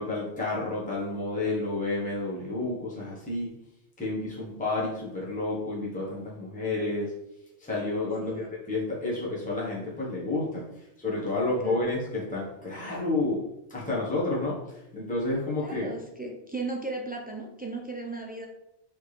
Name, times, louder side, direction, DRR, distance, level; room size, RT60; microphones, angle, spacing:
voice 1, 0.0-3.5 4.0-7.1 7.6-13.4 13.7-15.9, left 2 dB, 5° left, -6 dB, 1.1 m, -30 dB
voice 2, 11.4-11.8 15.6-18.5, right 3 dB, 15° right, 0 dB, 0.3 m, -36 dB
4.2 x 3.5 x 3.3 m, 0.84 s
omnidirectional pair, 1.2 m